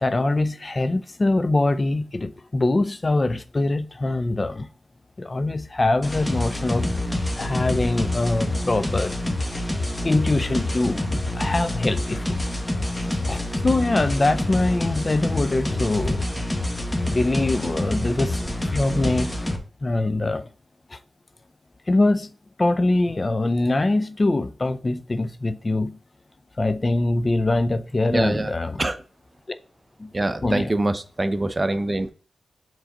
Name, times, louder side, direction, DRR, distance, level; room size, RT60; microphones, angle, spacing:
voice 1, 0.0-4.7 5.2-6.9 7.4-9.1 10.0-11.0 11.3-12.3 13.3-16.2 17.1-19.3 19.8-20.4 20.9-21.0 21.9-22.3 22.6-26.0 26.6-28.8 30.0-30.1 30.4-30.7, left 2 dB, 40° left, 0.5 m, -23 dB
sound 1, 6.0-19.6, left 1 dB, 15° left, 1.2 m, -27 dB
voice 2, 28.1-29.0 30.1-32.1, right 2 dB, 35° right, 0.7 m, -24 dB
4.9 x 3.9 x 5.2 m
cardioid pair, 45°, 0 cm